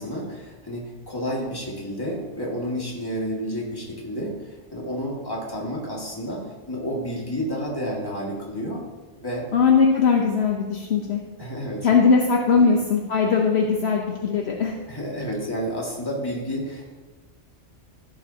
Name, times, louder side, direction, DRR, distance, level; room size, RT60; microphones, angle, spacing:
voice 1, 0.0-4.3 4.7-8.8 9.2-9.5 11.4-11.9 12.5-12.6 14.9-16.9, equal, 20° left, -3 dB, 2.1 m, -30 dB
voice 2, 9.5-11.2 11.8-14.8, left 5 dB, 60° left, 0 dB, 1.2 m, -20 dB
15.5 x 7.9 x 2.9 m, 1.3 s
omnidirectional pair, 1.2 m